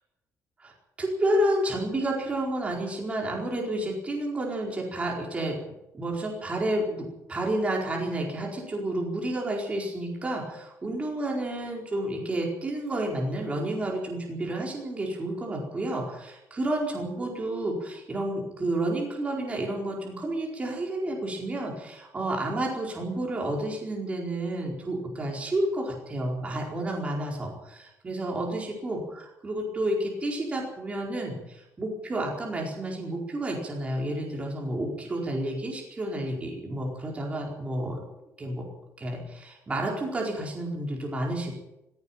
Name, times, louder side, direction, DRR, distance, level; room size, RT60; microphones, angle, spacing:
voice 1, 1.0-5.6 5.9-38.0 38.4-38.7 39.0-41.5, right 1 dB, 20° right, -1 dB, 4.6 m, -30 dB
17.5 x 17.0 x 9.0 m, 0.92 s
cardioid pair, 155°, 6 cm